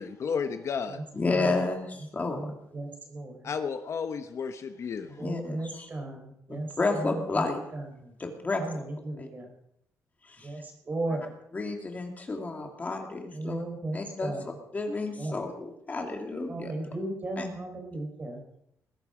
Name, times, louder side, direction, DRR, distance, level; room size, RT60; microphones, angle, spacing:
voice 1, 0.0-1.0 3.4-5.2, left 6 dB, 50° left, 8 dB, 0.9 m, -32 dB
voice 2, 1.1-2.5 5.0-5.9 6.5-7.6 8.2-8.6 9.2-9.3 10.2-10.5 11.1-11.2 11.5-13.6 13.9-16.7 17.4-17.5, left 3 dB, 25° left, 3 dB, 2.4 m, -31 dB
voice 3, 2.3-3.5 5.2-7.5 7.7-8.1 8.6-9.5 10.4-11.3 13.3-14.4 15.2-15.4 16.5-18.4, right 2 dB, 30° right, 3 dB, 4.2 m, -36 dB
20.5 x 11.0 x 5.0 m, 0.78 s
cardioid pair, 130°, 6 cm